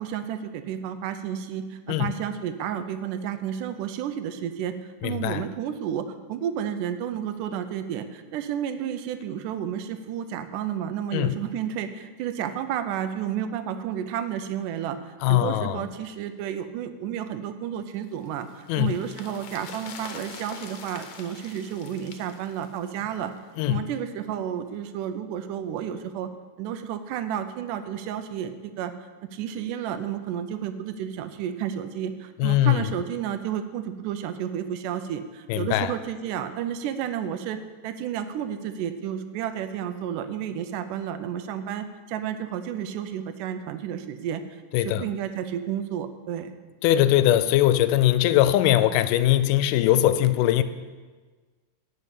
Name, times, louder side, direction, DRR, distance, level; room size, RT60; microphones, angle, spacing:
voice 1, 0.0-4.7 5.0-23.3 23.7-26.3 26.6-28.9 29.3-37.6 37.8-44.4 44.7-46.5, right 9 dB, 85° right, 10 dB, 2.2 m, -31 dB
voice 2, 5.0-5.4 11.1-11.4 15.2-15.9 18.7-19.0 23.6-23.8 32.4-32.9 35.5-35.9 44.7-45.1 46.8-50.6, left 13 dB, 90° left, 13 dB, 2.1 m, -21 dB
sound 1, 18.0-23.5 23.7-23.8, left 6 dB, 70° left, 2.1 m, -44 dB
11.0 x 5.5 x 8.2 m, 1.4 s
omnidirectional pair, 3.6 m